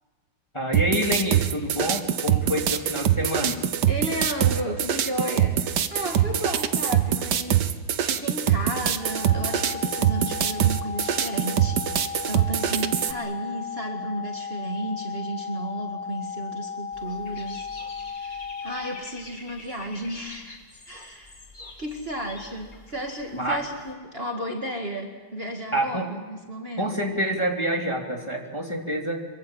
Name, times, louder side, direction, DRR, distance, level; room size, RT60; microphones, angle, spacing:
voice 1, 0.5-3.6 23.3-23.6 25.7-26.1 26.8-29.3, equal, 15° left, 1 dB, 3.0 m, -27 dB
sound 1, 0.7-13.1, right 10 dB, 65° right, 1.6 m, -24 dB
voice 2, 3.9-7.8 8.0-17.7 18.1-20.6 20.9-21.4 21.8-27.0, right 1 dB, 30° right, 2 dB, 2.2 m, -33 dB
sound 2, 9.0-19.0, left 6 dB, 50° right, 4.3 m, -35 dB
Dog / Bird, 16.9-23.9, left 2 dB, 40° left, 2.9 m, -46 dB
26.0 x 23.5 x 7.8 m, 1.5 s
omnidirectional pair, 2.0 m